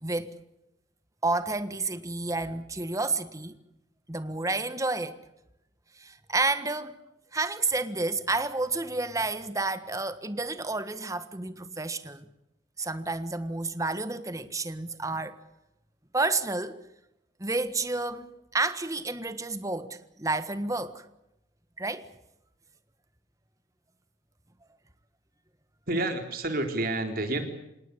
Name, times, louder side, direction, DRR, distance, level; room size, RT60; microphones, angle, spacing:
voice 1, 1.2-3.6 4.1-5.1 6.0-6.9 7.3-12.2 12.8-15.4 16.1-16.8 17.4-21.0 21.8-22.1, right 3 dB, 15° right, 1.4 m, -30 dB
voice 2, 25.9-27.4, right 2 dB, 50° right, 4.1 m, -29 dB
27.0 x 18.5 x 8.3 m
head